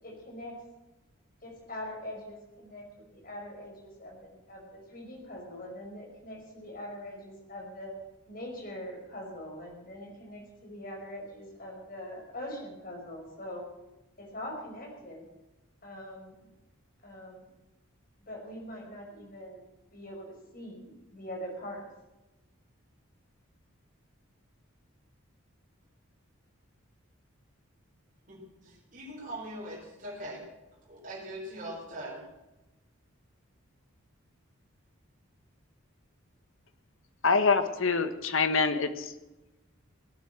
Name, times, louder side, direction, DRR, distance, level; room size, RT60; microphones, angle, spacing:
voice 1, 0.0-0.5 1.4-7.9 8.3-13.6 14.2-15.3 15.8-16.5 17.0-17.5 18.3-19.7 19.9-21.8, left 1 dB, 40° left, 0 dB, 5.3 m, -43 dB
voice 2, 28.3-30.5 30.9-32.3, right 1 dB, 40° right, -3 dB, 4.3 m, -41 dB
voice 3, 37.2-39.1, left 4 dB, 70° left, 10 dB, 1.3 m, -25 dB
17.0 x 9.4 x 7.6 m, 1.0 s
head